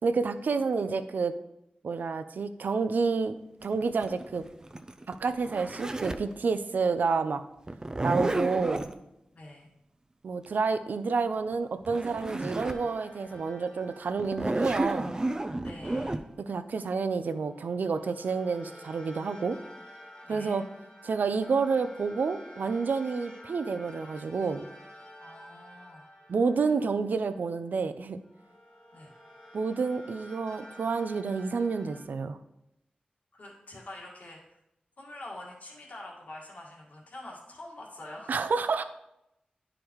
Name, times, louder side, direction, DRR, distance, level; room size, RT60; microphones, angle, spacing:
voice 1, 0.0-1.4 1.8-3.3 3.6-4.4 5.1-7.4 8.0-8.9 10.2-15.1 16.5-19.6 20.3-20.6 21.0-24.7 26.3-28.2 29.5-32.4 38.3-38.8, right 4 dB, 80° right, 10 dB, 0.5 m, -29 dB
Zipper (clothing), 3.6-6.3 7.7-8.9 11.5-11.6 11.8-12.9 13.3-13.4 14.2-16.2, right 2 dB, 25° right, 0.4 m, -31 dB
voice 2, 9.3-9.7 15.6-16.2 20.2-20.6 25.2-26.0 28.9-29.1 33.3-34.6 35.0-38.4, left 1 dB, 60° left, -3 dB, 1.8 m, -45 dB
sound 1, 12.1-16.3 17.2-27.7 28.2-32.0, left 1 dB, 35° left, 1.5 m, -51 dB
10.5 x 5.0 x 3.1 m, 0.85 s
wide cardioid pair, 110°, 3 cm